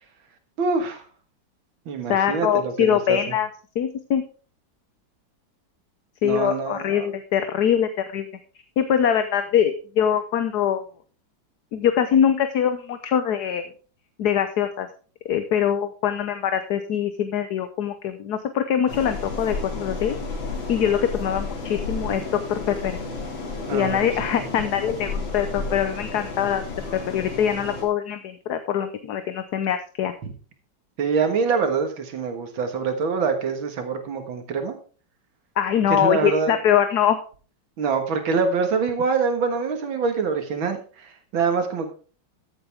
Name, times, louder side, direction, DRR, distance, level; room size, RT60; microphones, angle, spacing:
voice 1, 0.6-1.0 1.9-3.2 6.2-7.1 23.7-24.1 31.0-34.8 35.9-36.5 37.8-41.9, right 5 dB, 80° right, 6 dB, 2.4 m, -25 dB
voice 2, 2.1-3.5 3.8-4.2 6.2-8.3 8.8-10.8 11.7-13.7 14.2-14.9 15.3-20.1 20.7-23.0 23.7-26.6 26.9-30.1 35.6-37.2, left 9 dB, 65° left, 10 dB, 1.3 m, -23 dB
sound 1, 18.9-27.8, left 3 dB, 80° left, 3.2 m, -32 dB
13.5 x 8.0 x 3.5 m, 0.39 s
omnidirectional pair, 2.1 m